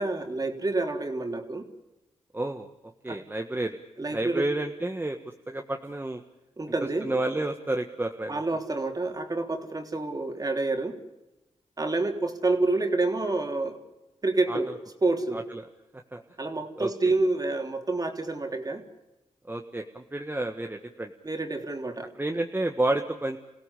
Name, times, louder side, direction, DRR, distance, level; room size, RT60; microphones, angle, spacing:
voice 1, 0.0-1.6 3.1-3.2 4.0-4.5 6.6-7.1 8.3-11.0 11.8-13.8 14.2-15.4 16.4-18.8 21.2-22.1, right 2 dB, 30° right, 4 dB, 3.4 m, -28 dB
voice 2, 2.3-2.7 3.0-3.8 4.1-5.2 5.5-6.2 7.0-8.4 14.5-14.6 15.3-15.6 16.1-16.2 16.8-16.9 19.4-21.1 22.2-23.4, right 2 dB, 15° right, 4 dB, 1.6 m, -30 dB
28.0 x 16.5 x 8.4 m, 0.99 s
cardioid pair, 70°, 12 cm